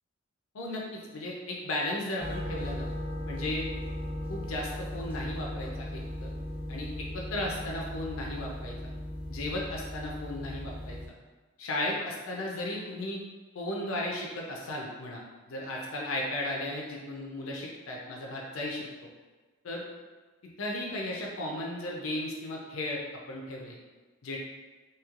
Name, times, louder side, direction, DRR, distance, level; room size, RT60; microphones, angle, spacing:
voice 1, 0.5-2.9 3.3-3.7 4.3-6.3 6.7-8.9 9.3-11.0 11.6-13.2 13.5-15.2 15.5-18.8 19.6-19.8 20.6-23.0 23.3-23.8 24.2-24.4, left 1 dB, 85° left, -2 dB, 0.5 m, -35 dB
sound 1, 2.2-11.1, left 1 dB, 10° right, 0.5 m, -37 dB
3.0 x 2.8 x 2.4 m, 1.3 s
head